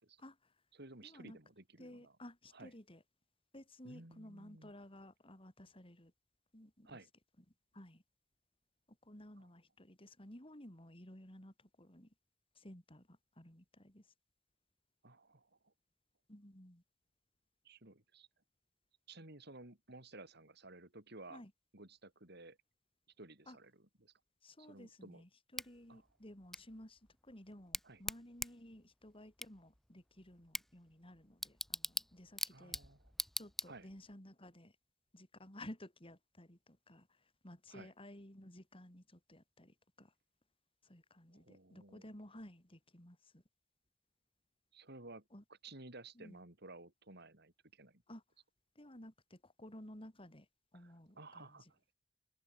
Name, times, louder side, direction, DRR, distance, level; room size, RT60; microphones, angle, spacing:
voice 1, 0.2-0.5 1.0-1.4 1.8-3.0 3.5-6.1 6.5-6.9 7.7-8.0 9.0-12.1 12.5-14.0 16.3-16.8 21.3-21.5 23.5-23.6 24.4-32.8 33.4-34.7 35.1-37.1 37.4-40.1 40.8-43.4 45.3-45.4 46.1-46.4 48.1-48.2 48.7-50.5 50.7-51.7, left 1 dB, 30° left, 5.0 m, -55 dB
voice 2, 0.7-2.2 2.5-2.7 3.8-4.7 6.8-7.1 9.4-9.5 15.0-15.7 17.6-18.3 19.1-21.4 21.7-22.6 23.2-24.1 24.6-25.2 25.9-26.0 27.8-28.0 32.5-33.1 33.6-33.9 37.7-37.9 41.3-42.0 44.7-45.2 45.6-48.0 50.7-51.9, right 2 dB, 60° right, 5.0 m, -55 dB
Bicycle / Tick, 25.6-34.1, left 1 dB, ahead, 0.5 m, -45 dB
open air
head